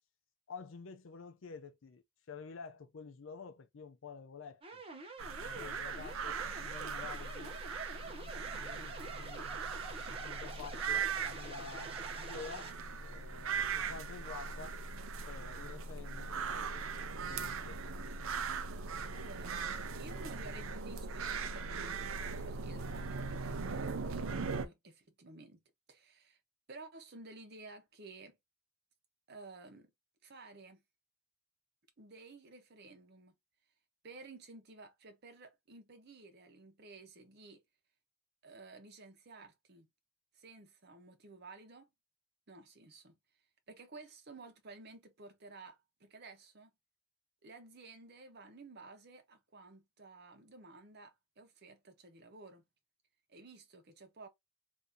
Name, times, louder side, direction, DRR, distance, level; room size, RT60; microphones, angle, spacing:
voice 1, 0.5-4.8 5.4-7.6 8.4-9.5 10.1-14.8 15.2-17.0 17.3-17.9, left 5 dB, 70° left, 0.5 m, -50 dB
sound 1, 4.6-12.7, right 3 dB, 30° right, 0.8 m, -48 dB
sound 2, 5.2-24.7, right 5 dB, 80° right, 0.5 m, -39 dB
voice 2, 19.1-19.6 19.9-25.6 25.9-26.4 26.7-28.4 29.3-29.9 30.2-30.8 32.0-33.4 34.0-37.6 38.4-39.9 40.3-41.9 42.5-43.1 43.7-46.7 47.4-52.6 53.3-54.3, right 3 dB, 55° right, 0.9 m, -53 dB
2.7 x 2.7 x 3.5 m
head